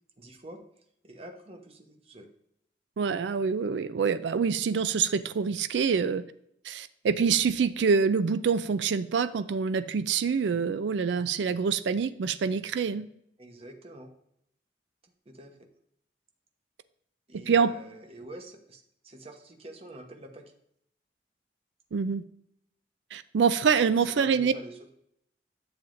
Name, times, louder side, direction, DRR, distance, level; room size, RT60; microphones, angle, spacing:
voice 1, 0.2-0.6 1.0-2.3 13.4-14.1 15.3-15.7 17.3-20.5 24.0-24.9, right 1 dB, 35° right, 4 dB, 1.0 m, -46 dB
voice 2, 3.0-6.2 6.6-13.1 17.5-17.7 21.9-22.2 23.1-24.5, right 6 dB, 80° right, 13 dB, 0.4 m, -26 dB
10.5 x 7.2 x 2.5 m, 0.74 s
head